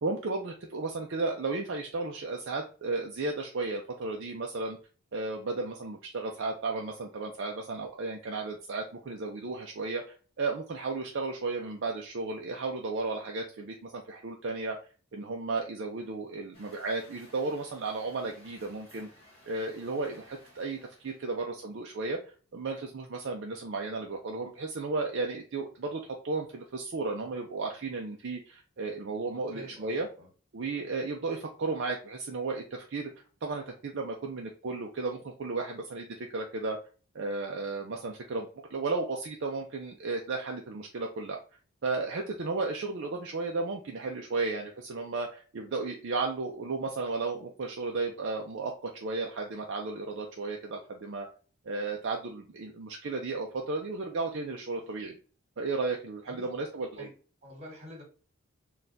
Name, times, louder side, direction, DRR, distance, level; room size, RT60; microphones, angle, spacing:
voice 1, 0.0-4.8 5.1-14.8 15.1-19.1 19.5-30.1 30.5-33.1 33.4-36.1 36.3-36.8 37.1-41.4 41.8-51.3 51.6-55.2 55.6-57.1, right 3 dB, 55° right, 1 dB, 0.5 m, -34 dB
Truck, 16.5-21.4, equal, 25° left, 1.5 m, -57 dB
voice 2, 29.5-30.3 54.7-55.0 56.2-56.5 56.9-57.1 57.4-58.0, left 1 dB, 30° right, -1 dB, 1.7 m, -48 dB
4.0 x 2.3 x 2.5 m, 0.38 s
head